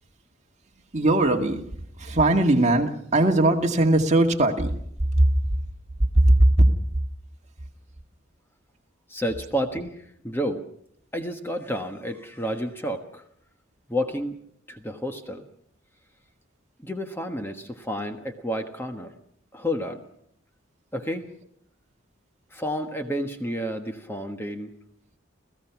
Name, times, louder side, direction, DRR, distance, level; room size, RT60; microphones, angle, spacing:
voice 1, 0.9-1.6 2.0-4.7 5.2-5.3 6.1-6.7, right 1 dB, 35° right, 3 dB, 2.0 m, -19 dB
voice 2, 9.1-10.6 11.1-13.2 13.9-14.4 14.7-15.4 16.8-19.1 19.5-20.0 20.9-21.3 22.5-24.7, equal, 10° left, 5 dB, 1.3 m, -30 dB
29.5 x 16.0 x 6.0 m, 0.69 s
head